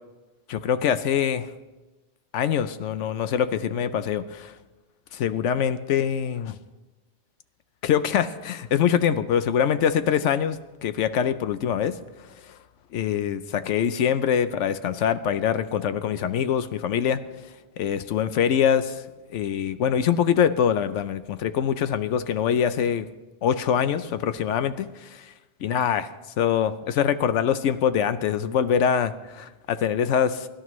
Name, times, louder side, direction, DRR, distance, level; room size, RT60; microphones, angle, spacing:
voice 1, 0.5-1.5 2.3-4.5 5.1-6.6 7.8-11.9 12.9-17.2 17.8-19.0 19.3-23.1 23.4-25.2 25.6-26.1 26.4-30.5, left 8 dB, 80° left, 12 dB, 0.9 m, -24 dB
23.5 x 11.5 x 3.1 m, 1.1 s
omnidirectional pair, 1.2 m